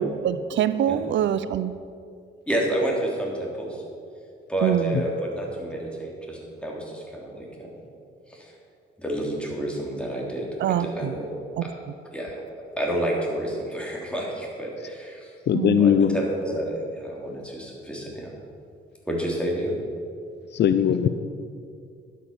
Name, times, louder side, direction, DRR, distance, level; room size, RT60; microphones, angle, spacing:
voice 1, 0.0-1.8 4.6-5.0 10.6-11.1 11.6-11.7 15.5-15.8, right 10 dB, 70° right, 13 dB, 0.5 m, -25 dB
voice 2, 2.5-3.8 4.5-7.7 8.3-8.5 9.0-11.3 12.1-12.4 12.8-15.3 15.8-18.3 19.1-19.8, right 1 dB, 5° left, -2 dB, 3.4 m, -29 dB
voice 3, 15.5-16.2 20.5-21.1, left 8 dB, 60° left, 11 dB, 0.6 m, -20 dB
11.5 x 8.3 x 6.8 m, 2.4 s
cardioid pair, 90°, 20 cm